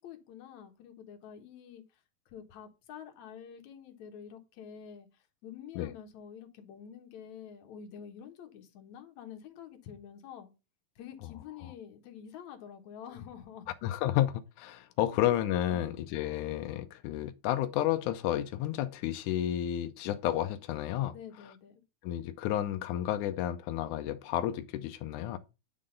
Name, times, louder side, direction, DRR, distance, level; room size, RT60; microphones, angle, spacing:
voice 1, 0.0-10.5 11.0-13.7 15.0-15.3 15.7-16.0 21.1-21.8, left 8 dB, 60° left, 2.2 m, -48 dB
voice 2, 13.8-21.2 22.0-25.4, left 12 dB, 90° left, 1.8 m, -31 dB
9.7 x 3.8 x 5.1 m
omnidirectional pair, 4.1 m